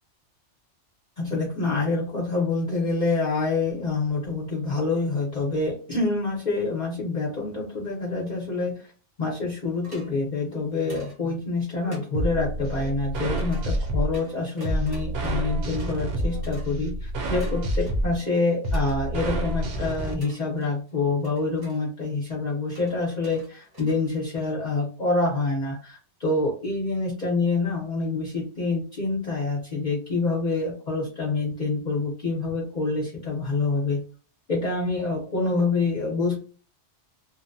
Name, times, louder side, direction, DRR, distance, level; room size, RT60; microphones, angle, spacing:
voice 1, 1.2-8.9 9.2-34.0 34.5-36.4, left 3 dB, 45° left, -4 dB, 0.8 m, -26 dB
sound 1, 9.8-10.1 10.9-11.2 11.9-12.1 13.4-13.7 14.1-16.2 16.4-16.8 17.2-18.2 18.7-19.0 20.2-20.9 21.2-21.8 22.7-24.6, right 1 dB, 25° right, 0.7 m, -48 dB
sound 2, 12.1-20.1, right 1 dB, 65° right, 0.8 m, -28 dB
2.8 x 2.1 x 2.5 m, 0.38 s
omnidirectional pair, 1.2 m